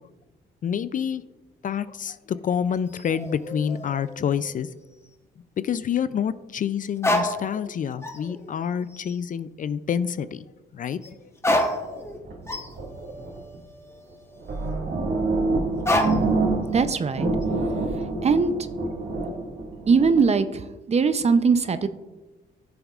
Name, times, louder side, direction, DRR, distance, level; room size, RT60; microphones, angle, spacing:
voice 1, 0.6-1.2 1.6-4.7 5.6-10.5 10.7-11.2, left 8 dB, 40° left, 15 dB, 0.4 m, -27 dB
sound 1, 2.7-4.8 5.1-5.2 7.0-7.7 8.0-8.5 8.9-9.3 11.0-11.1 11.4-14.7 15.9-16.4 16.7-17.4, left 1 dB, 15° left, 1.0 m, -29 dB
sound 2, 11.9-13.6 14.1-14.2 14.4-16.9 17.2-20.2, right 3 dB, 60° right, 2.0 m, -27 dB
voice 2, 16.7-17.3 18.2-18.5 19.9-20.6 20.9-21.9, right 5 dB, 35° right, 11 dB, 0.6 m, -20 dB
13.5 x 7.1 x 2.4 m, 1.1 s
cardioid pair, 90°, 20 cm